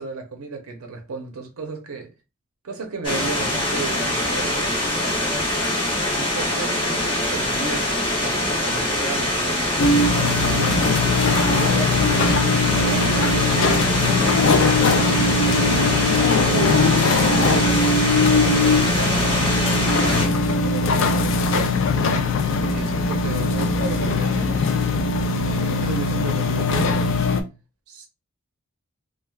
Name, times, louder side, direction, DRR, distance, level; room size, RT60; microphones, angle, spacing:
voice 1, 0.0-2.1 2.6-4.9 6.1-10.9 11.4-18.2 18.5-19.5 20.0-21.8 22.6-24.7 25.3-27.1 27.9-28.1, right 4 dB, 85° right, 0.6 m, -34 dB
sound 1, 3.0-20.3, left 1 dB, 25° left, 0.8 m, -23 dB
sound 2, 9.8-27.4, left 3 dB, 60° left, 0.3 m, -20 dB
3.2 x 2.3 x 2.2 m
head